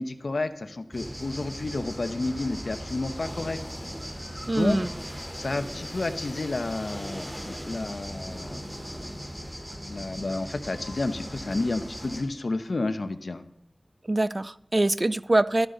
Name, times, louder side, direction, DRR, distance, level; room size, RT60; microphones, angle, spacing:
voice 1, 0.0-3.6 4.5-4.8 5.3-8.6 9.8-13.4, left 2 dB, 75° left, 9 dB, 0.9 m, -31 dB
sound 1, 0.9-12.2, equal, 15° right, 3.6 m, -38 dB
voice 2, 4.5-4.9 14.1-15.7, right 2 dB, 40° right, 17 dB, 0.4 m, -24 dB
12.5 x 10.5 x 3.9 m, 0.79 s
wide cardioid pair, 50°, 0 cm